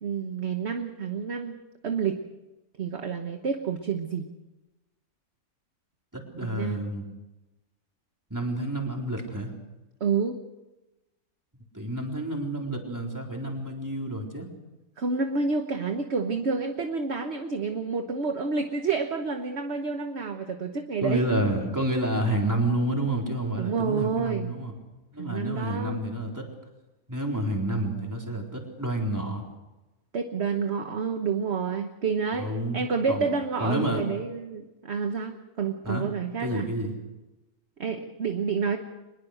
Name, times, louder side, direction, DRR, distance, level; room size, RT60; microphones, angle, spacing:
voice 1, 0.0-1.6 1.8-2.2 2.8-4.3 6.4-6.9 10.0-10.4 15.0-21.2 23.6-24.5 25.2-26.0 30.1-32.5 32.7-36.7 37.8-38.8, right 5 dB, 50° right, 6 dB, 1.4 m, -29 dB
voice 2, 6.1-7.0 8.3-9.5 11.7-14.5 21.0-24.7 25.1-26.5 27.1-29.4 32.3-33.3 33.6-34.1 35.8-36.1 36.4-36.9, right 1 dB, 10° right, 0 dB, 3.8 m, -29 dB
24.0 x 21.0 x 6.5 m, 1.1 s
omnidirectional pair, 1.6 m